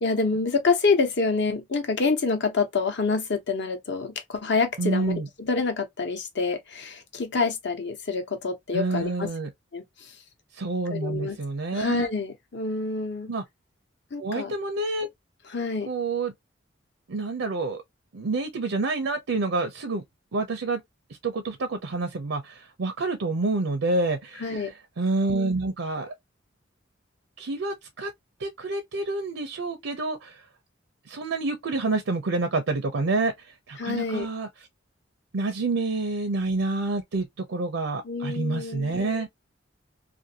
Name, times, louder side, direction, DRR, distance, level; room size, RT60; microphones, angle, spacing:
voice 1, 0.0-9.3 9.7-10.2 10.9-11.4 11.7-13.3 14.1-14.5 15.5-15.9 24.4-24.7 33.8-34.3 38.0-39.0, left 4 dB, 60° left, 0.8 m, -27 dB
voice 2, 4.8-5.3 8.7-9.5 10.5-12.1 13.3-13.4 14.2-15.1 15.8-16.3 17.1-17.8 18.1-20.0 20.3-20.8 21.2-24.6 25.0-26.1 27.4-28.1 28.4-30.4 31.1-34.5 35.3-39.4, right 3 dB, 80° right, 0.5 m, -28 dB
2.5 x 2.5 x 2.7 m
head